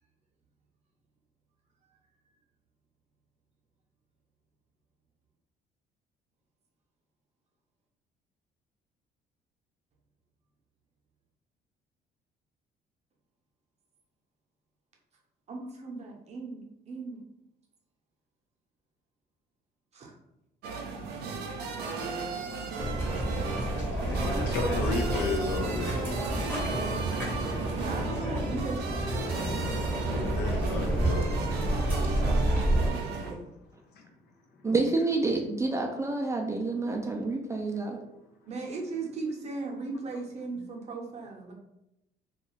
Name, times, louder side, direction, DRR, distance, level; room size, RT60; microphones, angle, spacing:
voice 1, 15.5-17.2 19.9-20.1 27.8-29.0 30.6-31.1 33.2-33.4 38.5-41.5, right 3 dB, 40° right, 0 dB, 0.7 m, -37 dB
sound 1, 20.6-33.3, right 4 dB, 75° right, 0.5 m, -36 dB
sound 2, 22.8-32.9, right 1 dB, 10° left, 0.9 m, -29 dB
voice 2, 23.8-26.1 27.0-27.8 29.4-33.0 33.9-34.1, left 3 dB, 75° left, 2 dB, 0.6 m, -36 dB
voice 3, 34.6-38.0, right 3 dB, 15° right, 1 dB, 0.3 m, -28 dB
2.4 x 2.3 x 3.0 m, 0.85 s
cardioid pair, 110°, 17 cm